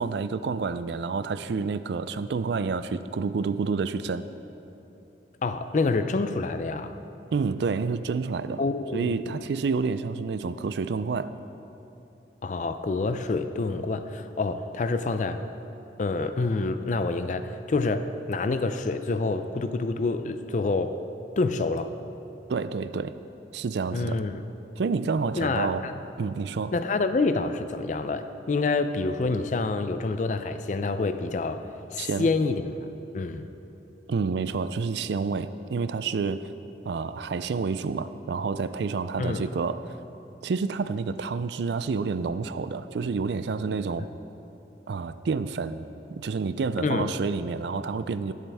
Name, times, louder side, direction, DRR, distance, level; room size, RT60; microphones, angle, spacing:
voice 1, 0.0-4.3 7.3-8.6 8.9-11.3 22.5-23.2 23.5-24.2 24.8-25.8 26.2-26.7 32.0-32.3 34.1-36.5 36.8-40.0 40.4-44.1 44.9-45.9 46.1-48.3, right 4 dB, 70° right, 13 dB, 0.4 m, -29 dB
voice 2, 5.4-7.0 8.6-9.4 12.4-15.4 16.0-21.0 21.4-21.9 23.9-24.3 25.4-25.9 26.7-32.7 33.1-33.5 39.2-39.5 46.8-47.1, left 3 dB, 40° left, 9 dB, 0.4 m, -27 dB
19.0 x 7.4 x 3.5 m, 3.0 s
head